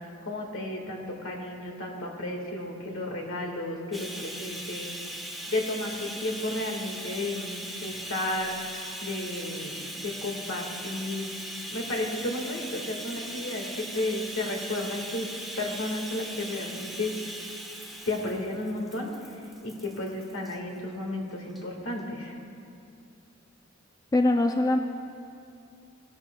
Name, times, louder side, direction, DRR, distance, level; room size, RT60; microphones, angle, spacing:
voice 1, 0.3-4.9 5.5-8.7 9.0-11.3 11.7-15.3 15.6-17.1 18.1-22.4, left 2 dB, 75° left, 1 dB, 1.7 m, -33 dB
Bathtub (filling or washing), 3.9-20.6 21.5-21.6 22.0-22.1, right 1 dB, ahead, 1.0 m, -39 dB
voice 2, 24.1-24.8, left 2 dB, 15° left, 5 dB, 0.3 m, -22 dB
17.0 x 11.5 x 2.3 m, 2.5 s
head